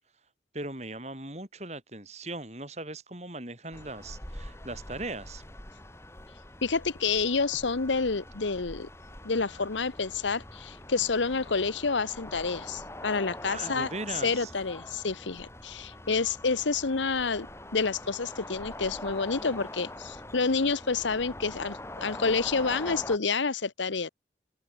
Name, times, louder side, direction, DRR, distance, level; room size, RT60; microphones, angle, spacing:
voice 1, 0.5-5.4 13.5-14.5, right 2 dB, 35° right, 5.7 m, -39 dB
sound 1, 3.7-23.2, left 1 dB, 15° left, 3.6 m, -44 dB
voice 2, 6.6-8.9 9.2-13.9 14.2-17.5 17.7-24.1, left 4 dB, 85° left, 1.0 m, -29 dB
open air
head